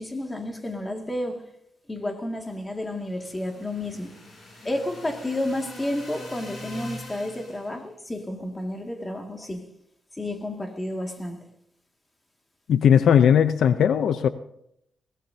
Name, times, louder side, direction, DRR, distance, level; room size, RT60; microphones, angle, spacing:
voice 1, 0.0-1.4 1.9-4.1 4.6-9.6 10.1-11.4, left 1 dB, 15° left, 3 dB, 2.2 m, -31 dB
sound 1, 2.9-7.8, left 1 dB, 30° left, 7.1 m, -43 dB
voice 2, 12.7-14.3, left 8 dB, 65° left, 11 dB, 0.6 m, -18 dB
21.5 x 18.0 x 2.8 m, 0.74 s
cardioid pair, 140°, 0 cm